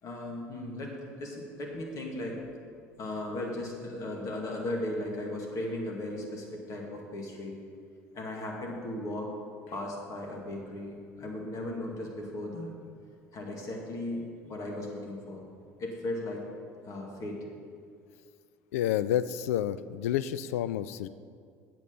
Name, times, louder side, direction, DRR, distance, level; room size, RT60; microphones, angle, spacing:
voice 1, 0.0-2.4 3.0-7.6 8.1-9.3 9.7-12.7 13.3-15.5 15.8-16.4 16.8-17.5, left 1 dB, 45° left, -1 dB, 2.3 m, -36 dB
voice 2, 18.7-21.1, left 11 dB, 75° left, 14 dB, 0.3 m, -29 dB
9.2 x 8.3 x 5.5 m, 2.2 s
hypercardioid pair, 65°, 8 cm